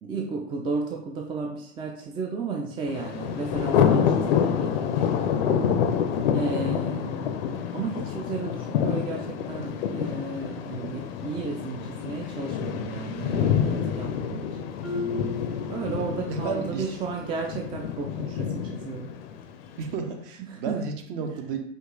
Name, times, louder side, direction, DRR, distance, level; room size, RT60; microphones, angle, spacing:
voice 1, 0.0-5.1 6.3-7.4 7.7-14.6 15.7-19.1 20.5-20.8 21.2-21.3, right 4 dB, 15° right, 1 dB, 0.4 m, -33 dB
Thunder, 2.9-19.9, left 8 dB, 50° left, 0.6 m, -27 dB
voice 2, 5.5-5.9 14.9-15.7 16.3-16.9 19.8-21.6, right 5 dB, 45° right, 5 dB, 1.0 m, -33 dB
Marimba xylophone, 14.8-16.6, left 4 dB, 80° right, 1.3 m, -35 dB
5.2 x 2.4 x 3.7 m, 0.68 s
figure-of-eight pair, 90°, 38 cm